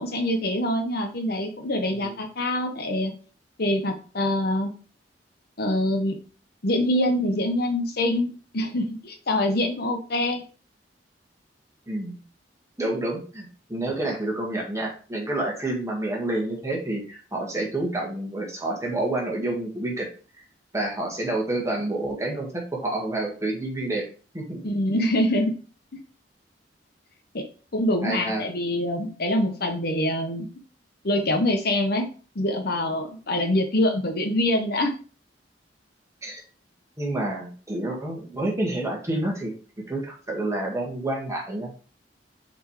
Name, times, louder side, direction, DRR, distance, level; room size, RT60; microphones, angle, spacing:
voice 1, 0.0-3.1 3.6-4.7 5.6-6.2 6.6-10.4 24.6-25.5 27.3-27.4 27.7-30.5 31.0-32.1 32.3-34.9, left 1 dB, 60° left, 4 dB, 1.1 m, -25 dB
voice 2, 11.9-12.2 12.8-20.1 20.7-24.1 24.3-24.6 28.0-28.4 36.2-36.4 37.0-39.5 39.9-41.8, right 2 dB, 15° right, -1 dB, 1.8 m, -28 dB
6.7 x 4.4 x 3.2 m, 0.37 s
head